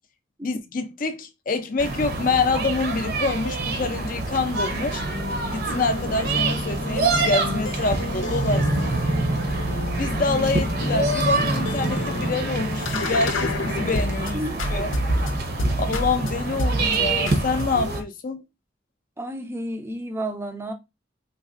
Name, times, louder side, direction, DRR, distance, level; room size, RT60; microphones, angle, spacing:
voice 1, 0.4-5.0 5.5-8.9 10.0-14.4 14.7-14.9 15.8-18.4, left 4 dB, 45° left, 0.5 m, -26 dB
sound 1, 1.8-18.0, right 3 dB, 55° right, 0.7 m, -26 dB
sound 2, 4.6-14.3 14.6-16.3 16.6-17.0 17.3-18.0, left 1 dB, 90° left, 0.6 m, -29 dB
voice 2, 14.3-14.8 19.2-20.7, right 1 dB, 15° right, 0.4 m, -32 dB
3.9 x 2.5 x 2.4 m
head